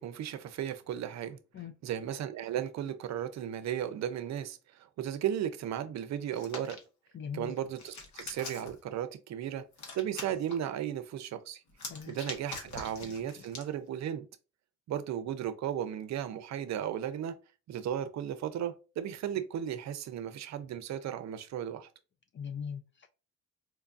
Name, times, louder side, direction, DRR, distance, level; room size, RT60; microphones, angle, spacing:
voice 1, 0.0-1.4 1.8-6.8 7.3-9.6 9.9-11.6 12.1-14.3 14.9-17.4 17.7-21.9, right 10 dB, 65° right, 0.6 m, -35 dB
Hands, 6.3-6.8 7.5-8.8 9.7-10.5 11.7-13.7, left 3 dB, 70° left, 1.1 m, -43 dB
voice 2, 7.1-7.5 11.9-12.2 13.0-13.5 22.3-23.1, left 7 dB, 40° left, 0.4 m, -41 dB
4.5 x 2.2 x 2.5 m
cardioid pair, 90°, 30 cm